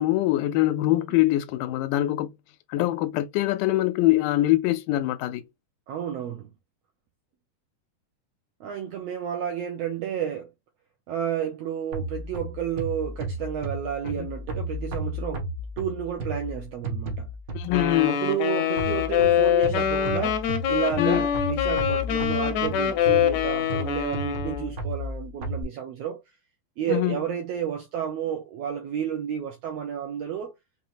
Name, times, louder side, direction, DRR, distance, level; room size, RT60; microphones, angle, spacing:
voice 1, 0.0-2.3 2.7-5.4 14.1-14.3 17.5-18.2 21.0-21.3 26.9-27.2, left 16 dB, 90° left, 2.1 m, -23 dB
voice 2, 5.9-6.5 8.6-10.5 11.1-15.5 15.8-17.3 18.1-26.2 26.8-30.5, right 9 dB, 80° right, 1.4 m, -31 dB
sound 1, 11.9-18.0 18.8-25.6, right 1 dB, 65° right, 1.1 m, -33 dB
Wind instrument woodwind instrument, 17.7-24.7, left 9 dB, 75° left, 1.7 m, -24 dB
5.4 x 2.9 x 2.5 m
omnidirectional pair, 3.6 m